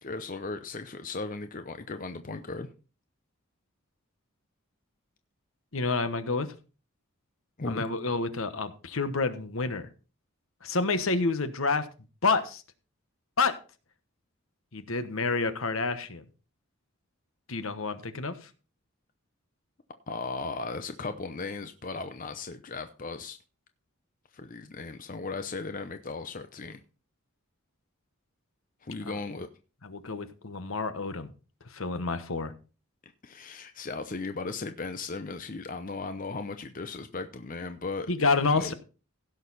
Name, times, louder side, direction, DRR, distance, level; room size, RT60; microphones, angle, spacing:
voice 1, 0.0-2.7 7.6-7.9 20.1-23.4 24.3-26.8 28.8-29.5 33.2-38.1 38.5-38.7, left 3 dB, 40° left, 8 dB, 0.7 m, -36 dB
voice 2, 5.7-6.5 7.7-9.9 10.6-11.9 12.2-12.6 13.4-13.6 14.7-16.2 17.5-18.4 29.1-29.2 29.8-31.3 31.7-32.5 38.1-38.7, left 3 dB, 70° left, 11 dB, 1.2 m, -28 dB
16.0 x 6.6 x 4.1 m, 0.34 s
head